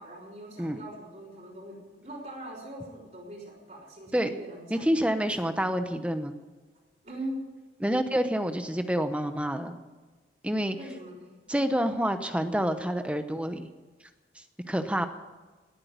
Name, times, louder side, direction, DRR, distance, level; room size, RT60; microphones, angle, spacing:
voice 1, 0.0-5.0 5.4-5.5 7.0-7.4 10.7-11.3, right 1 dB, 40° right, -6 dB, 4.8 m, -41 dB
voice 2, 4.7-6.4 7.8-9.8 10.4-10.8 11.5-13.7 14.3-15.1, equal, 5° right, 8 dB, 0.8 m, -28 dB
18.5 x 8.5 x 9.4 m, 1.3 s
head